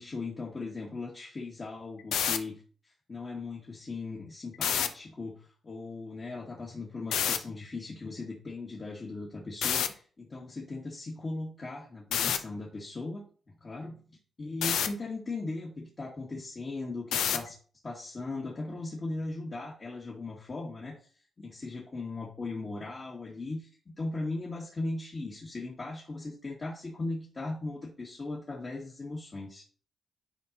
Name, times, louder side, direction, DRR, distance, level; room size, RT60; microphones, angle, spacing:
voice 1, 0.0-2.6 3.1-13.3 13.6-14.0 14.4-17.6 17.8-21.0 21.4-29.6, left 3 dB, 45° left, -2 dB, 1.7 m, -38 dB
sound 1, 2.0-2.4 4.5-4.9 7.1-7.4 9.6-9.9 12.1-12.4 14.6-14.9 17.1-17.5, left 8 dB, 85° left, 0.5 m, -27 dB
9.0 x 4.7 x 2.8 m, 0.42 s
supercardioid pair, 50°, 0 cm